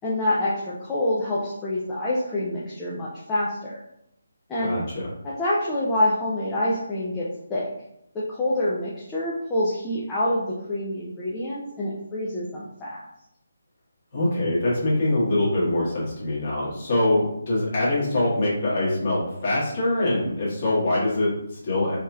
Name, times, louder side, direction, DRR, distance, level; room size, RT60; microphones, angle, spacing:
voice 1, 0.0-3.8 4.5-4.7 5.2-7.7 8.1-13.0, left 1 dB, 5° left, -9 dB, 0.3 m, -26 dB
voice 2, 4.6-5.0 14.1-22.0, left 1 dB, 25° left, -8 dB, 1.4 m, -24 dB
4.7 x 2.8 x 2.3 m, 0.78 s
hypercardioid pair, 180°, 0 cm